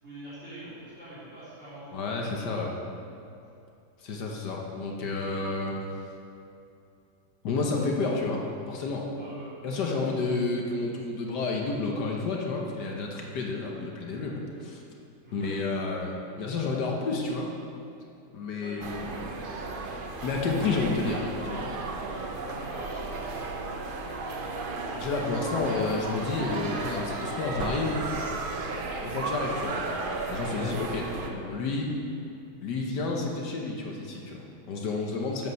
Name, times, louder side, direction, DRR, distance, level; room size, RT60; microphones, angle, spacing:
voice 1, 0.0-1.9 5.2-5.6 9.1-9.5 15.2-15.5 18.6-19.1 22.5-23.7 25.4-25.6 31.1-31.3 35.3-35.5, right 1 dB, 40° right, -11 dB, 3.1 m, -45 dB
voice 2, 1.9-2.8 4.0-5.7 7.4-9.1 9.6-14.8 15.3-17.5 18.3-19.2 20.2-21.7 24.9-28.0 29.0-30.0 30.3-31.1 31.4-31.9 32.6-35.5, left 3 dB, 70° left, -1 dB, 1.5 m, -30 dB
sound 1, 18.8-31.3, right 3 dB, 65° right, 0.5 m, -34 dB
8.1 x 7.4 x 6.4 m, 2.6 s
omnidirectional pair, 1.9 m